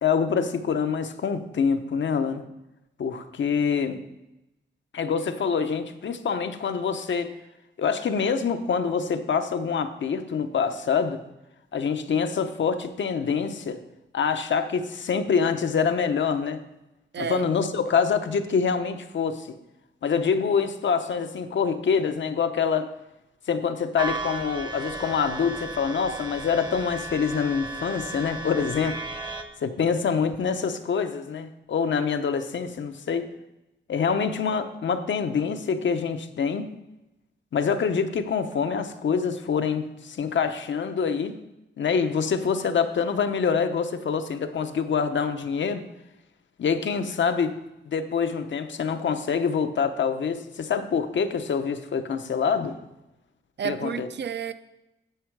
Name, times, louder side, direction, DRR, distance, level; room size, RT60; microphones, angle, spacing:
voice 1, 0.0-2.4 3.0-4.0 4.9-7.3 7.8-11.2 11.7-13.8 14.1-16.6 17.2-19.6 20.0-22.9 23.5-29.0 29.6-33.3 33.9-36.7 37.5-41.4 41.8-45.8 46.6-47.5 47.9-52.8 53.6-54.1, left 6 dB, 70° left, 0.9 m, -25 dB
sound 1, 24.0-29.4, right 2 dB, 20° right, 0.8 m, -35 dB
voice 2, 53.6-54.5, right 7 dB, 60° right, 0.6 m, -30 dB
10.0 x 7.7 x 4.7 m
wide cardioid pair, 105°, 20 cm